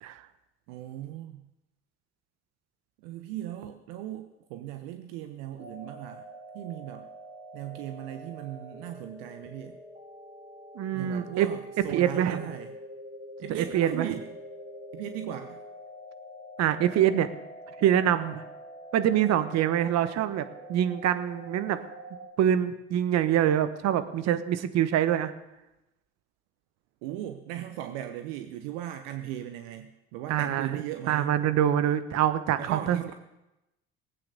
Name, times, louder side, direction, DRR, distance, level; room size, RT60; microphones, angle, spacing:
voice 1, 0.7-1.4 3.0-6.3 6.5-7.1 7.5-9.8 10.9-12.7 13.4-14.3 14.9-15.6 27.0-31.3 32.6-33.1, right 12 dB, 80° right, 8 dB, 0.9 m, -38 dB
sound 1, 5.6-22.3, right 1 dB, 40° right, 4.1 m, -45 dB
voice 2, 10.7-11.5 11.9-12.5 13.5-14.1 16.6-17.3 17.8-18.4 18.9-21.8 22.4-25.3 30.3-30.7 31.1-33.1, right 10 dB, 60° right, 12 dB, 1.3 m, -25 dB
18.5 x 8.9 x 6.8 m, 0.95 s
hypercardioid pair, 65°, 29 cm